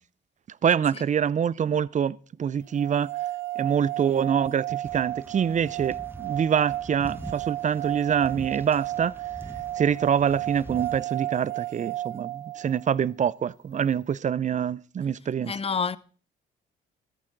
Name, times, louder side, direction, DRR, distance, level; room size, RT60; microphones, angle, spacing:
voice 1, 0.6-3.1 3.6-9.1 9.8-15.5, right 8 dB, 40° right, 0.6 m, -25 dB
sound 1, 2.7-12.9, right 15 dB, 60° right, 1.1 m, -33 dB
sound 2, 4.8-11.0, right 2 dB, 10° right, 1.2 m, -44 dB
voice 2, 15.4-16.0, left 5 dB, 30° left, 0.7 m, -28 dB
14.5 x 13.5 x 3.9 m
cardioid pair, 90°, 20 cm